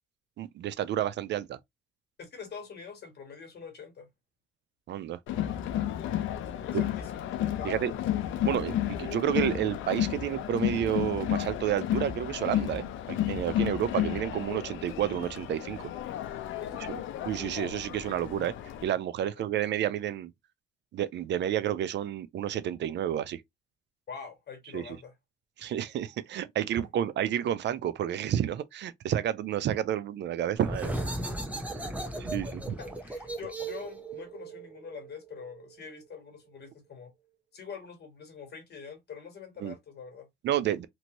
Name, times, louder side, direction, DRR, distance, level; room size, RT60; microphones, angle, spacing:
voice 1, 0.4-1.6 4.9-5.2 6.7-6.8 7.6-7.9 8.4-15.9 16.9-17.0 17.3-18.5 18.8-20.3 20.9-23.4 24.7-25.0 25.6-31.0 31.8-31.9 32.2-32.6 39.6-39.7 40.4-40.9, right 11 dB, 65° right, 0.4 m, -30 dB
voice 2, 2.2-4.1 6.4-7.2 7.6-8.0 16.6-16.9 19.3-19.5 24.1-25.1 26.8-26.9 31.9-32.2 32.8-37.1 37.5-40.3, left 6 dB, 55° left, 1.5 m, -45 dB
Crowd, 5.3-18.8, left 12 dB, 80° left, 0.5 m, -32 dB
sound 1, 30.6-36.0, right 1 dB, 5° right, 0.8 m, -36 dB
2.9 x 2.6 x 2.8 m
cardioid pair, 90°, 20 cm